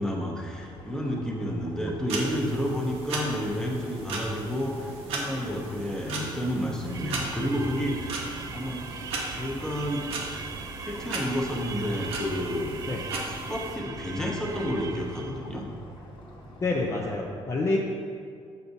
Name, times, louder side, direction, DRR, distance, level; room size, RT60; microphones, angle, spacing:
voice 1, 0.0-8.2 8.5-8.8 9.3-10.0 10.8-12.7 13.5-15.6, equal, 5° left, -2 dB, 0.9 m, -30 dB
sound 1, 0.5-17.0, equal, 55° left, 1.1 m, -46 dB
sound 2, 2.1-13.8, right 2 dB, 90° right, 1.0 m, -37 dB
sound 3, 6.9-15.5, right 5 dB, 35° right, 0.4 m, -40 dB
voice 2, 16.6-17.8, left 3 dB, 30° left, -2 dB, 0.5 m, -27 dB
6.6 x 5.8 x 2.7 m, 2.2 s
cardioid pair, 120°, 10 cm